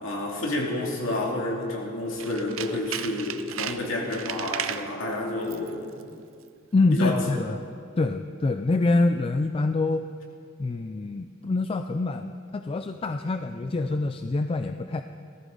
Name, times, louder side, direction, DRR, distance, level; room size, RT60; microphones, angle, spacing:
voice 1, 0.0-5.9 6.9-7.2, left 2 dB, 75° left, -2 dB, 2.5 m, -29 dB
Tools, 2.1-4.9 5.4-5.7 6.0-6.1, right 9 dB, 75° right, 0.6 m, -35 dB
voice 2, 6.7-7.6 8.0-10.1 10.6-15.0, left 2 dB, 25° left, 8 dB, 0.3 m, -25 dB
18.0 x 14.0 x 3.9 m, 2.3 s
head